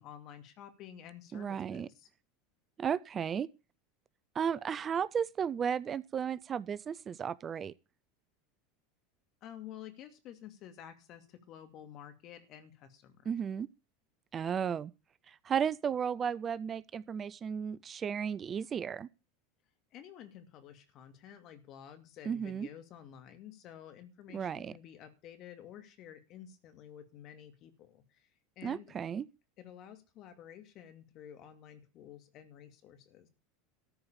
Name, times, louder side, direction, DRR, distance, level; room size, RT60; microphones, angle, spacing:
voice 1, 0.0-2.1 9.4-13.3 19.9-28.3 28.6-29.0 29.6-33.3, left 10 dB, 50° left, 2.4 m, -51 dB
voice 2, 1.3-1.9 2.8-3.5 4.3-7.7 13.3-13.7 14.3-14.9 15.3-19.1 22.3-22.7 24.3-24.7 28.6-29.3, right 7 dB, 35° right, 0.5 m, -34 dB
14.0 x 4.8 x 8.8 m
hypercardioid pair, 90°, 0 cm